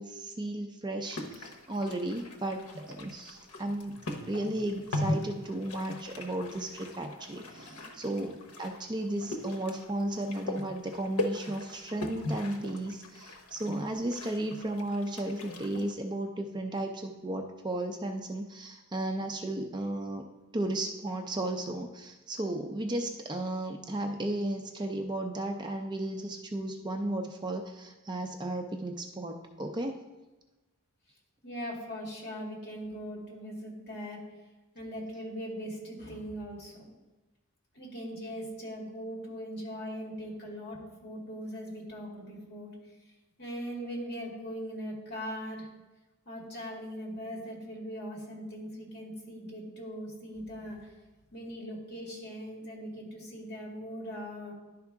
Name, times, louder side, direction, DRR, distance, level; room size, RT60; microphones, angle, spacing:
voice 1, 0.0-4.0 4.2-20.2 20.5-30.0, right 1 dB, 20° right, 4 dB, 0.4 m, -34 dB
sound 1, 1.0-15.9, left 1 dB, 75° left, 0.9 m, -39 dB
voice 2, 7.3-8.0 31.4-34.2 34.7-36.8 37.7-42.7 43.4-45.7 46.3-50.9 51.3-54.5, equal, 50° left, -1 dB, 1.9 m, -40 dB
11.0 x 4.7 x 3.5 m, 1.1 s
head